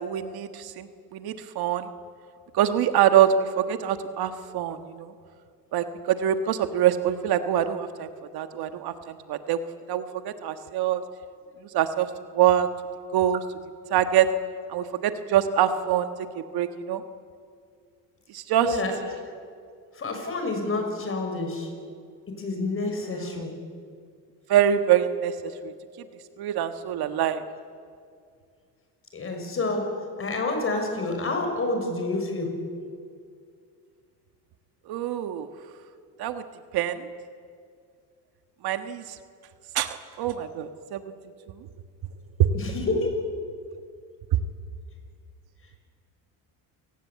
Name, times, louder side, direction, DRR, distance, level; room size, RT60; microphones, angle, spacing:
voice 1, 0.0-1.9 2.5-5.1 5.7-8.1 8.3-9.6 9.9-11.0 11.7-12.1 12.3-12.7 13.1-13.4 13.9-14.3 14.7-17.0 18.3-18.7 23.3-23.4 24.5-25.3 25.6-25.7 26.4-27.4 34.9-35.5 36.2-36.4 36.7-37.1 38.6-39.0 39.8-41.0 42.4-42.5, right 10 dB, 65° right, 9 dB, 1.6 m, -24 dB
voice 2, 18.6-18.9 19.9-21.7 22.4-23.5 29.1-29.9 30.2-32.5 42.5-43.2, left 2 dB, 30° left, 4 dB, 6.5 m, -28 dB
28.0 x 18.5 x 8.6 m, 2.2 s
cardioid pair, 110°, 41 cm